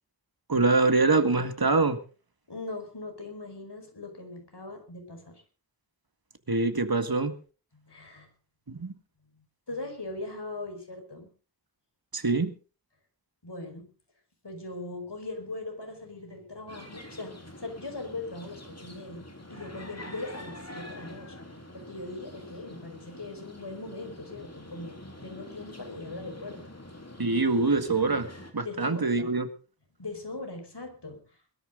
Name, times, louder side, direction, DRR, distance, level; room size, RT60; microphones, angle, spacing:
voice 1, 0.5-2.0 6.5-7.3 8.7-8.9 12.1-12.5 27.2-28.3 28.5-29.5, right 3 dB, 60° right, 9 dB, 1.9 m, -24 dB
voice 2, 2.5-5.4 7.7-8.3 9.3-11.3 13.4-13.9 14.4-19.2 19.5-21.4 21.7-26.6 28.6-29.4 30.0-31.2, left 2 dB, 80° left, 5 dB, 5.1 m, -40 dB
sound 1, 16.7-28.5, left 1 dB, 40° left, 3.8 m, -46 dB
21.0 x 13.5 x 3.9 m, 0.36 s
wide cardioid pair, 40°, 40 cm